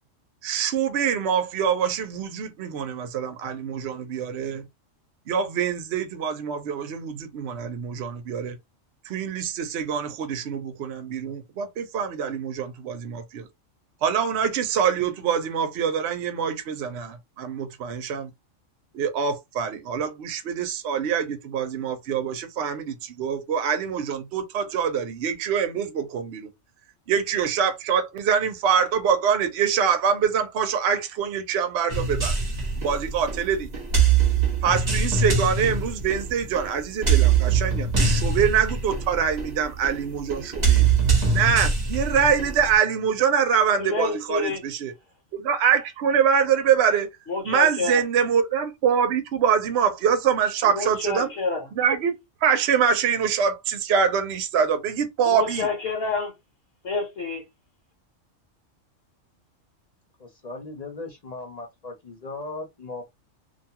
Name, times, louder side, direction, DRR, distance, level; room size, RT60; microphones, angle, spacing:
voice 1, 0.4-4.6 5.3-8.6 9.0-13.5 14.0-18.3 18.9-26.5 27.1-31.9 32.8-33.8 34.6-40.8 41.3-44.9 45.3-47.1 47.4-51.3 51.8-52.1 52.4-55.7, right 7 dB, 65° right, 0.8 m, -24 dB
sound 1, 31.9-42.8, right 5 dB, 35° right, 1.0 m, -23 dB
voice 2, 43.8-44.6 47.3-48.0 50.6-51.7 55.2-56.3 56.8-57.4, left 4 dB, 60° left, 1.2 m, -28 dB
voice 3, 60.2-63.0, left 3 dB, 45° left, 0.5 m, -37 dB
2.6 x 2.3 x 2.8 m
omnidirectional pair, 1.3 m